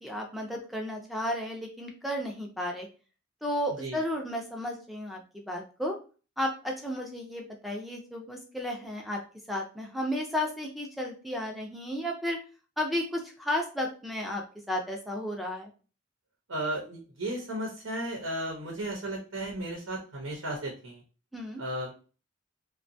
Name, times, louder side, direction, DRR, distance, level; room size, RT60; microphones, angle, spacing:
voice 1, 0.0-2.9 3.4-6.0 6.4-9.2 9.5-12.4 12.8-14.4 14.7-15.7 21.3-21.6, left 1 dB, ahead, 0 dB, 0.4 m, -33 dB
voice 2, 16.5-21.0 21.6-21.9, right 1 dB, 90° right, -1 dB, 0.8 m, -34 dB
2.6 x 2.2 x 2.6 m, 0.36 s
head